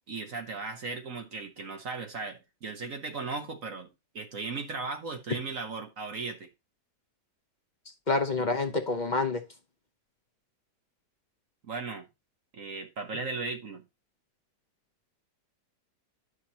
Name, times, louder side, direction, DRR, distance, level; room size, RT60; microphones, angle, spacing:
voice 1, 0.1-6.5 11.7-12.1 12.5-13.8, right 4 dB, 55° right, 1.5 m, -37 dB
voice 2, 8.1-9.4, left 3 dB, 35° left, 0.8 m, -27 dB
11.0 x 6.3 x 2.9 m
omnidirectional pair, 1.8 m